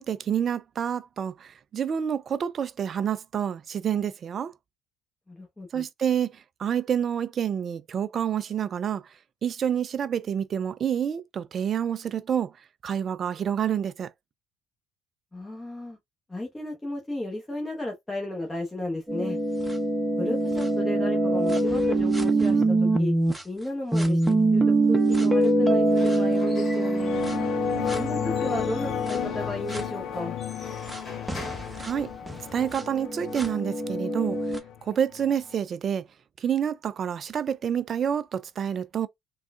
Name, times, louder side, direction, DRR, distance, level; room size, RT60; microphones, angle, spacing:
voice 1, 0.0-4.5 5.7-9.0 9.4-12.5 12.8-14.1 31.8-32.1 32.5-34.4 34.8-36.0 36.4-39.1, right 8 dB, 45° right, 0.4 m, -28 dB
voice 2, 5.3-5.8 15.3-16.0 16.3-19.4 20.2-23.1 23.4-24.2 24.5-27.2 27.9-30.3, left 1 dB, 15° left, 1.0 m, -34 dB
sound 1, 19.1-23.4 23.9-29.8 30.9-31.0 31.3-34.6, right 2 dB, 10° right, 0.8 m, -24 dB
Squeak / Wood, 25.7-32.6, left 2 dB, 35° left, 1.9 m, -46 dB
sound 2, 26.9-35.5, left 9 dB, 60° left, 0.4 m, -33 dB
3.5 x 2.3 x 2.4 m
hypercardioid pair, 60°, 0 cm